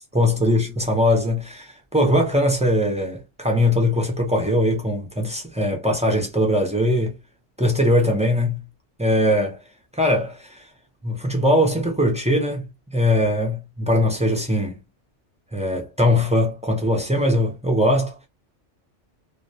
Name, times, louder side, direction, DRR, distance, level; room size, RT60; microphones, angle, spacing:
voice 1, 0.1-7.2 7.6-8.6 9.0-9.6 9.9-10.7 11.0-14.8 15.5-18.2, left 1 dB, 10° right, 0.4 m, -21 dB
2.2 x 2.2 x 2.7 m
omnidirectional pair, 1.2 m